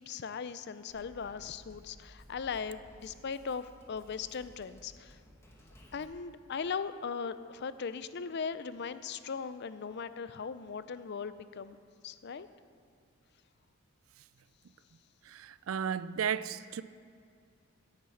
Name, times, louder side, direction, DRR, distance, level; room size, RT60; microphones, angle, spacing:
voice 1, 0.0-5.2 5.9-11.8 12.0-12.5, left 5 dB, 50° left, 0.4 m, -39 dB
Drum kit, 0.9-6.1, equal, 10° left, 1.3 m, -57 dB
voice 2, 15.3-16.8, right 7 dB, 70° right, 0.4 m, -34 dB
10.5 x 7.4 x 8.4 m
head